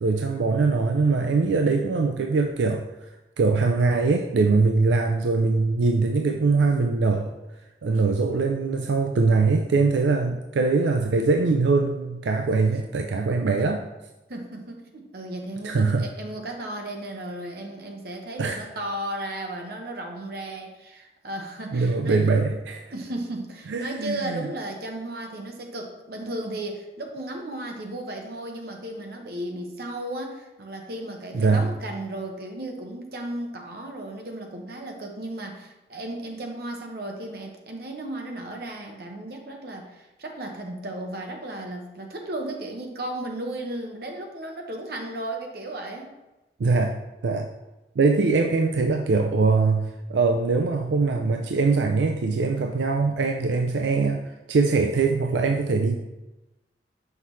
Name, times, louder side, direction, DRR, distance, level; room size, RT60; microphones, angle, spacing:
voice 1, 0.0-2.9 3.4-7.3 7.8-13.8 15.6-16.1 18.4-18.6 21.7-22.8 23.7-24.5 31.3-31.7 46.6-47.5 48.0-56.0, right 4 dB, 90° right, 4 dB, 0.4 m, -22 dB
voice 2, 14.3-22.4 22.9-46.1, right 1 dB, 60° right, 2 dB, 0.9 m, -35 dB
5.8 x 5.6 x 3.1 m, 1.0 s
head